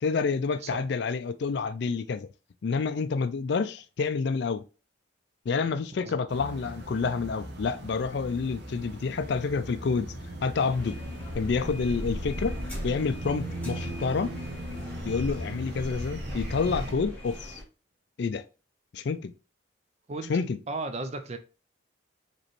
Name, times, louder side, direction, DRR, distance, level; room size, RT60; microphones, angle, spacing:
voice 1, 0.0-2.3 2.6-4.6 5.5-10.1 10.4-11.0 11.4-12.6 12.8-14.3 15.0-17.6 18.2-18.4 18.9-19.3 20.3-20.6, left 5 dB, 55° left, 0.4 m, -28 dB
voice 2, 6.0-6.3 20.1-20.4 20.7-21.4, right 3 dB, 30° right, 0.4 m, -35 dB
sound 1, 6.3-16.9, equal, 55° right, 0.9 m, -38 dB
sound 2, 10.6-17.6, equal, 10° left, 1.3 m, -39 dB
5.1 x 3.1 x 3.0 m
head